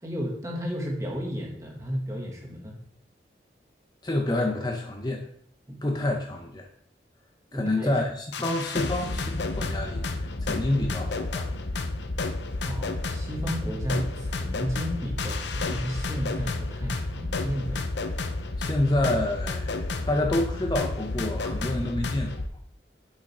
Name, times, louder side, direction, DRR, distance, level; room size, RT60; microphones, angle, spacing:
voice 1, 0.0-2.8 5.7-5.8 7.5-7.9 8.4-8.5 12.6-17.9, equal, 20° right, 0 dB, 1.4 m, -33 dB
voice 2, 4.0-5.3 5.8-6.7 7.5-11.5 18.6-22.4, left 1 dB, 25° left, 2 dB, 0.6 m, -28 dB
sound 1, 8.3-22.5, left 2 dB, 85° left, 0.7 m, -31 dB
7.2 x 5.1 x 4.2 m, 0.70 s
head